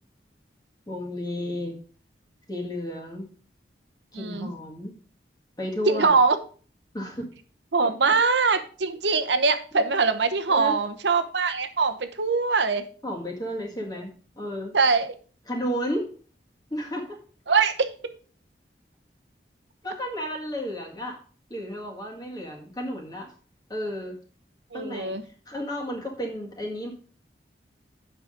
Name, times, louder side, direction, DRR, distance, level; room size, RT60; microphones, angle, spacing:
voice 1, 0.9-1.8 2.5-3.3 4.1-4.9 5.6-6.2 6.9-7.3 9.7-9.9 10.5-10.8 13.0-14.7 15.5-16.1 16.7-17.2 19.8-21.2 21.5-23.3 23.7-24.2 24.7-25.1 25.5-26.9, equal, 20° left, 0 dB, 1.8 m, -32 dB
voice 2, 4.1-4.5 5.9-6.4 7.7-12.8 14.7-15.1 17.5-17.9 24.7-25.2, right 4 dB, 80° right, 10 dB, 0.9 m, -22 dB
8.0 x 5.8 x 5.1 m, 0.41 s
head